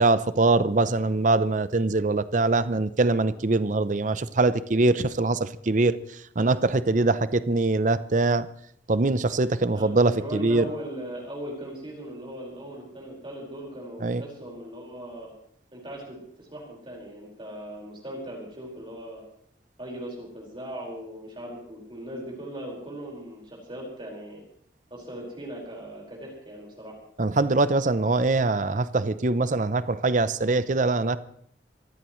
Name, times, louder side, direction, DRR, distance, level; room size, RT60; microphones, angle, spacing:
voice 1, 0.0-6.0 6.4-8.5 8.9-10.6 14.0-14.2 27.2-31.2, right 3 dB, 45° right, 0.6 m, -23 dB
voice 2, 9.7-15.3 15.7-19.2 19.8-24.4 24.9-27.0, right 1 dB, 30° right, 5.0 m, -39 dB
24.5 x 16.0 x 3.2 m
head